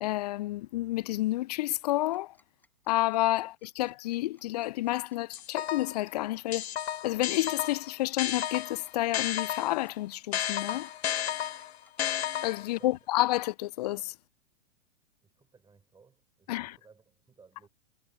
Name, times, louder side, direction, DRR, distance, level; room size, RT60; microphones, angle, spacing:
voice 1, 0.0-2.3 2.9-6.6 7.0-10.9 12.4-14.1 16.5-16.8, left 17 dB, 35° left, 0.5 m, -30 dB
Tick-tock, 1.8-11.9, left 2 dB, 5° left, 5.5 m, -65 dB
sound 1, 5.3-6.0 6.5-9.9 10.3-12.8, left 11 dB, 60° left, 0.9 m, -33 dB
voice 2, 15.2-17.7, right 5 dB, 10° right, 4.9 m, -59 dB
figure-of-eight pair, 105°, 36 cm